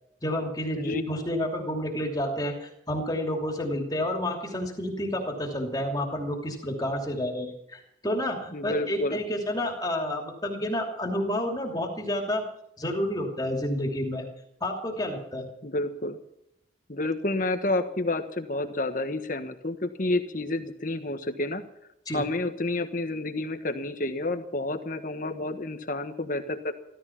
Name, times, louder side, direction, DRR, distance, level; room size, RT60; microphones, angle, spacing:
voice 1, 0.2-12.4 12.8-14.2 14.6-15.5 22.1-22.2, left 1 dB, 20° left, 2 dB, 2.7 m, -30 dB
voice 2, 8.5-9.2 15.6-16.2 16.9-21.6 22.1-26.7, left 2 dB, 45° left, 7 dB, 1.4 m, -30 dB
16.0 x 14.0 x 5.9 m, 0.79 s
head